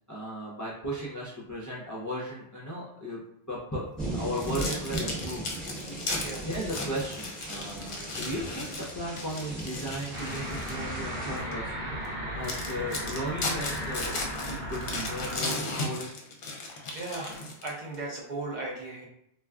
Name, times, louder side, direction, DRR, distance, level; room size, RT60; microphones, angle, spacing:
voice 1, 0.1-3.2 3.5-5.4 6.5-11.7 12.3-14.2 14.5-16.2, equal, 25° left, -5 dB, 0.4 m, -36 dB
sound 1, 4.0-11.4, right 1 dB, ahead, 0.8 m, -38 dB
sound 2, 4.4-10.8 11.4-11.5 12.1-12.2 12.4-18.0, left 2 dB, 60° left, 0.7 m, -36 dB
sound 3, 10.1-15.4, equal, 80° right, 0.9 m, -35 dB
voice 2, 16.9-19.1, right 2 dB, 50° right, -3 dB, 0.7 m, -37 dB
2.3 x 2.3 x 3.5 m, 0.76 s
omnidirectional pair, 1.1 m